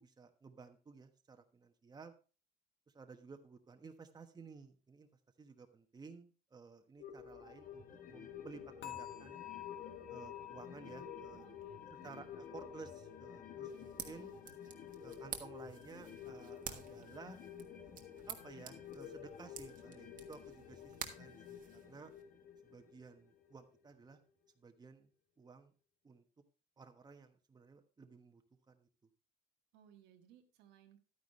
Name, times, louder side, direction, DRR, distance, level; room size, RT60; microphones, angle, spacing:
voice 1, 0.0-2.1 2.9-5.1 5.4-9.5 10.1-11.5 12.0-14.3 15.0-17.4 18.3-22.1 22.6-24.2 24.6-25.1 25.4-25.7 26.0-26.2 26.8-28.4 28.7-28.9, right 4 dB, 25° right, 6 dB, 1.2 m, -55 dB
sound 1, 7.0-23.8 24.1-24.2, left 7 dB, 55° left, 1.4 m, -51 dB
sound 2, 8.8-15.9 16.2-16.6 17.1-17.2, left 14 dB, 75° left, 1.6 m, -53 dB
voice 2, 11.3-12.4 13.9-14.5 29.7-31.0, right 10 dB, 85° right, 4 dB, 1.5 m, -64 dB
sound 3, 13.6-22.2, right 8 dB, 55° right, 1.4 m, -51 dB
11.5 x 9.5 x 3.2 m, 0.34 s
cardioid pair, 110°, 17 cm